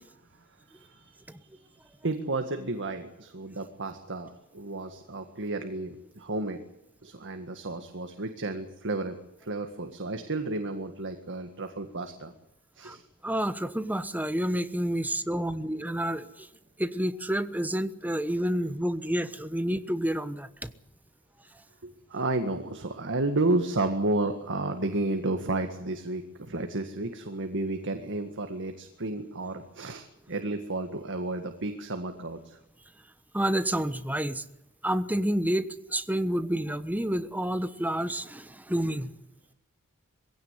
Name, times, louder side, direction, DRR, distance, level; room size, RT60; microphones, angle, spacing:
voice 1, 0.7-6.6 7.0-12.3 12.8-13.0 21.8-32.6, right 2 dB, 55° right, 6 dB, 1.9 m, -32 dB
voice 2, 13.2-16.5 16.8-20.7 33.3-34.4 34.8-39.2, right 1 dB, 5° right, 11 dB, 1.2 m, -29 dB
22.5 x 16.5 x 9.9 m, 0.85 s
head